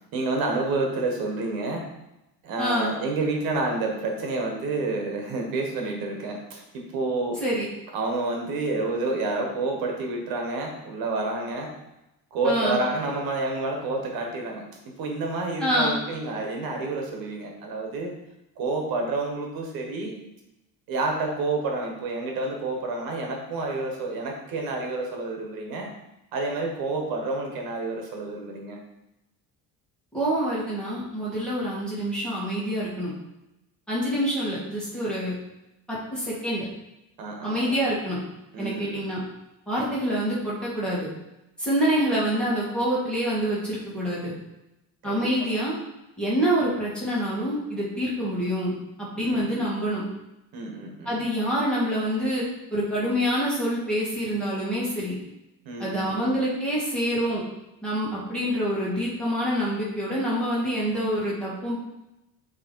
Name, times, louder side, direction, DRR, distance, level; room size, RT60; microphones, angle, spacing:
voice 1, 0.1-1.8 2.4-7.4 7.9-11.7 12.3-18.1 18.6-20.1 20.9-25.9 26.3-28.8 37.2-37.8 38.5-39.0 45.0-45.5 49.1-49.7 50.5-51.2 55.6-56.3, right 2 dB, 65° right, 1 dB, 1.4 m, -29 dB
voice 2, 2.6-2.9 7.4-7.7 12.4-12.8 15.6-16.0 30.1-33.1 33.9-35.3 35.9-36.6 37.4-38.2 38.6-39.2 39.7-41.1 41.6-44.3 45.0-45.8 46.2-50.0 51.1-52.4 52.7-55.1 55.8-57.4 57.8-61.8, equal, ahead, -8 dB, 1.9 m, -26 dB
8.0 x 3.2 x 4.6 m, 0.91 s
cardioid pair, 175°, 38 cm